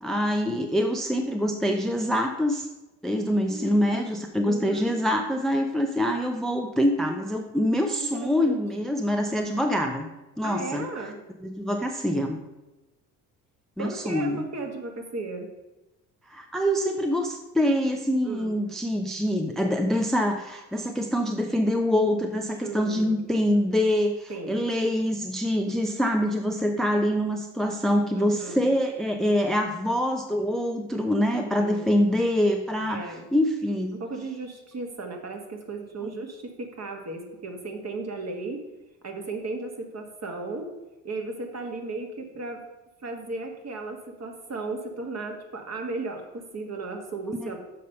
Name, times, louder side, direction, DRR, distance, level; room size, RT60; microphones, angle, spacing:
voice 1, 0.0-2.7 3.0-10.1 10.4-10.9 11.4-12.4 13.8-14.4 16.3-34.0 36.0-36.1, equal, ahead, 4 dB, 0.6 m, -25 dB
voice 2, 3.5-4.2 4.5-5.0 8.0-8.6 10.4-11.2 13.8-15.5 18.2-18.5 22.6-23.2 24.3-24.6 28.2-28.7 31.3-31.9 32.9-33.3 33.9-38.6 39.0-40.7 41.0-42.6 43.0-47.6, right 3 dB, 35° right, 3 dB, 1.7 m, -35 dB
6.7 x 5.4 x 5.4 m, 1.0 s
hypercardioid pair, 60°, 44 cm